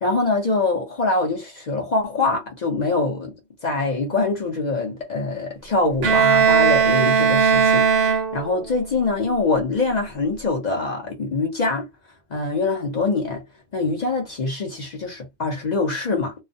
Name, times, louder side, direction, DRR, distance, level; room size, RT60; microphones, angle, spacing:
voice 1, 0.0-3.3 3.6-11.9 12.3-13.4 13.7-16.3, left 3 dB, 45° left, 0.6 m, -24 dB
Bowed string instrument, 6.0-8.7, right 6 dB, 60° right, 0.7 m, -18 dB
2.3 x 2.1 x 2.6 m
omnidirectional pair, 1.3 m